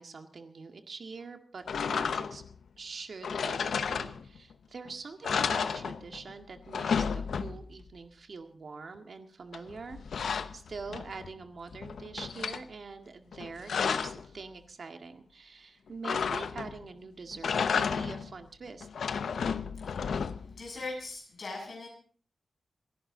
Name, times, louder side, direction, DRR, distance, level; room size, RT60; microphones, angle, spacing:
voice 1, 0.0-2.4 2.8-18.9, right 4 dB, 50° right, 6 dB, 1.9 m, -44 dB
sound 1, 1.7-2.5 3.2-4.5 4.9-5.0 5.2-6.3 6.6-7.8 9.5-11.3 11.7-12.6 13.3-14.3 16.0-16.8 17.3-18.3 18.8-20.6, left 6 dB, 85° left, 0.9 m, -32 dB
voice 2, 19.7-21.9, left 3 dB, 55° left, -1 dB, 7.4 m, -41 dB
28.5 x 11.0 x 3.9 m, 0.43 s
wide cardioid pair, 160°, 0 cm